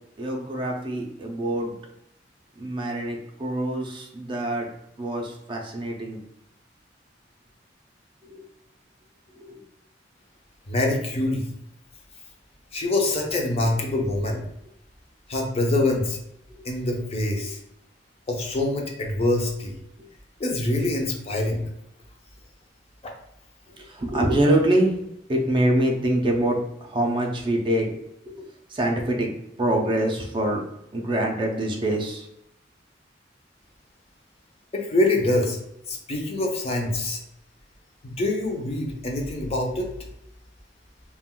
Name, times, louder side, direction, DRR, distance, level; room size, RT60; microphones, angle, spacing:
voice 1, 0.2-1.7 2.6-4.7 5.0-6.2 8.3-8.4 9.5-9.6 16.6-16.7 17.4-17.5 23.8-25.0 25.3-28.0 28.3-29.3 29.6-30.6 30.9-32.3, right 1 dB, 25° right, 1 dB, 0.4 m, -25 dB
voice 2, 10.7-11.5 12.7-14.4 15.3-16.2 16.6-17.6 18.3-19.7 20.4-21.6 34.7-35.6 35.9-37.2 38.0-39.9, left 2 dB, 35° left, 1 dB, 0.5 m, -25 dB
2.4 x 2.2 x 3.5 m, 0.80 s
head